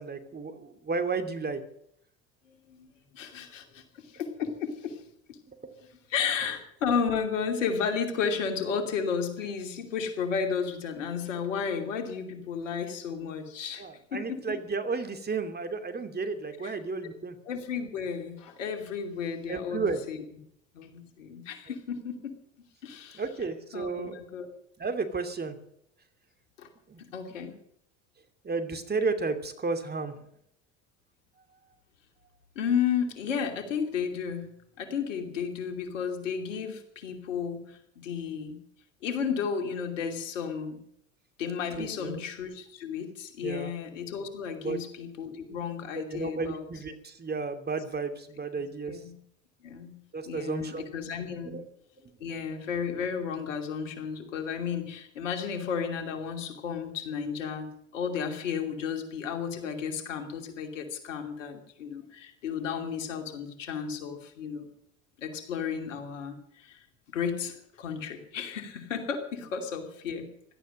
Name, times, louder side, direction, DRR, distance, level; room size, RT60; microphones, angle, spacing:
voice 1, 0.0-1.6 5.6-5.7 13.8-17.4 19.5-20.0 23.2-24.2 24.8-25.5 26.9-27.0 28.4-30.2 41.8-42.2 43.4-43.7 44.6-44.8 45.5-45.6 45.9-49.0 50.1-50.9 51.5-51.6, right 4 dB, 25° right, 7 dB, 2.6 m, -33 dB
voice 2, 2.5-5.0 5.3-5.4 6.1-14.6 16.6-16.8 17.4-20.2 20.7-22.4 22.8-23.2 23.7-24.5 26.6-26.7 27.1-27.5 32.5-38.6 39.0-40.8 41.4-46.6 48.9-49.2 49.6-50.0 50.3-51.6 52.2-64.7 65.2-66.8 67.1-70.3, left 6 dB, 80° left, 6 dB, 2.8 m, -33 dB
17.0 x 12.5 x 6.5 m, 0.70 s
hypercardioid pair, 70°, 37 cm